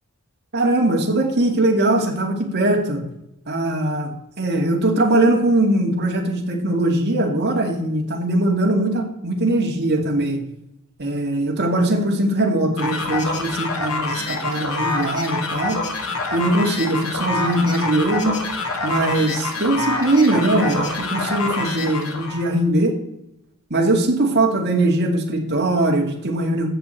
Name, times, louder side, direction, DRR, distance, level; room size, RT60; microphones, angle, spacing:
voice 1, 0.5-3.0 3.5-4.1 4.4-10.4 11.0-15.8 16.3-18.4 18.8-23.0 23.7-26.7, right 1 dB, 50° right, 0 dB, 2.4 m, -20 dB
sound 1, 12.8-22.5, left 3 dB, 75° left, 2.2 m, -26 dB
16.0 x 6.9 x 4.5 m, 0.82 s
head